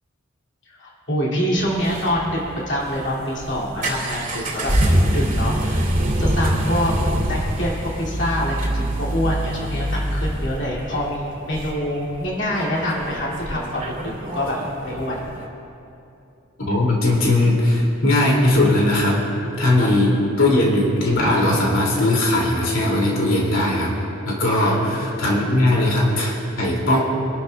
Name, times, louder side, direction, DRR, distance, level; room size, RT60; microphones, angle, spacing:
voice 1, 0.7-2.4 2.7-5.8 6.2-7.0 7.3-14.6 14.8-15.2 19.8-19.9 24.5-25.2, equal, 60° left, -5 dB, 2.5 m, -26 dB
sound 1, 1.6-15.4, right 1 dB, 40° right, 2.6 m, -25 dB
voice 2, 16.7-19.2 19.6-23.9 24.2-27.0, left 1 dB, 75° left, -3 dB, 2.6 m, -19 dB
25.0 x 12.0 x 2.3 m, 2.8 s
head